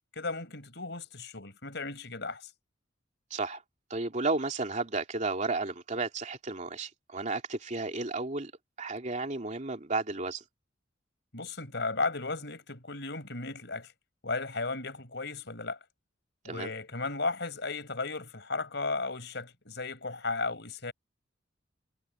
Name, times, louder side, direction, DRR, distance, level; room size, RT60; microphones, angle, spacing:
voice 1, 0.1-2.5 11.3-13.9 14.2-15.8 16.4-20.9, left 3 dB, 65° left, 6.4 m, -35 dB
voice 2, 3.3-3.6 3.9-8.5 8.8-10.4 16.4-16.7, right 3 dB, 40° right, 2.9 m, -33 dB
head